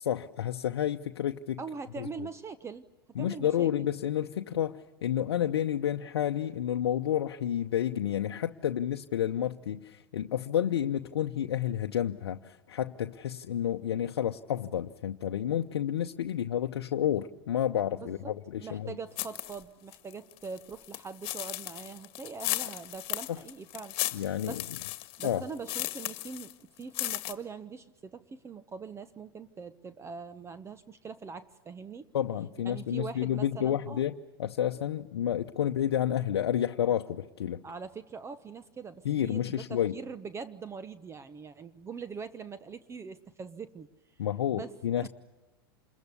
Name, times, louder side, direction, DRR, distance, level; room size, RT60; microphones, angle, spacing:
voice 1, 0.1-1.6 2.0-2.1 3.2-19.0 23.3-23.4 24.1-24.6 25.2-25.4 32.1-37.6 39.0-40.0 44.2-45.1, left 10 dB, 80° left, 5 dB, 0.8 m, -30 dB
voice 2, 1.6-2.8 3.2-3.9 18.0-18.3 18.6-24.6 25.2-32.1 32.6-34.0 37.6-44.2 44.5-45.1, right 5 dB, 20° right, 13 dB, 1.0 m, -42 dB
sound 1, 19.2-19.6 19.9-26.5 26.8-27.3, left 18 dB, 45° left, 1.8 m, -35 dB
27.5 x 21.5 x 8.4 m, 1.1 s
hypercardioid pair, 100°, 13 cm